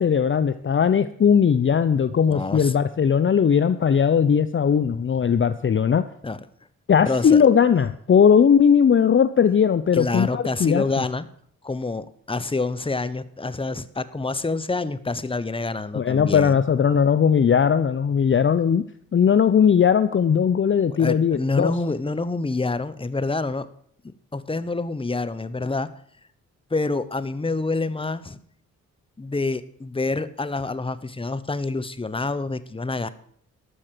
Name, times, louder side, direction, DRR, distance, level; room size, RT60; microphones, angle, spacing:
voice 1, 0.0-6.0 6.9-10.8 15.9-18.8 19.1-21.7, left 7 dB, 35° left, 12 dB, 0.7 m, -18 dB
voice 2, 2.3-2.7 6.2-6.4 7.1-7.4 9.9-11.3 11.6-16.6 21.0-23.7 24.3-25.9 26.7-28.4 29.2-33.1, left 3 dB, 15° left, 14 dB, 1.0 m, -27 dB
12.5 x 6.4 x 7.6 m, 0.64 s
supercardioid pair, 50°, 33 cm